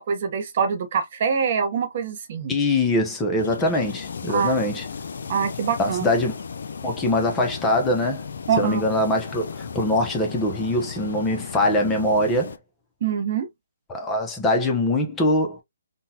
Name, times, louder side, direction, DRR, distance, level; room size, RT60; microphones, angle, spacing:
voice 1, 0.0-2.5 4.3-4.6 5.3-6.2 8.5-8.8 13.0-13.5, right 6 dB, 45° right, 0.8 m, -24 dB
voice 2, 2.5-4.9 5.8-6.3 6.8-8.3 8.6-12.5 13.9-15.6, left 1 dB, 10° left, 0.7 m, -23 dB
sound 1, 3.4-12.6, left 6 dB, 60° left, 0.5 m, -35 dB
3.8 x 2.2 x 2.7 m
figure-of-eight pair, 150°, 0 cm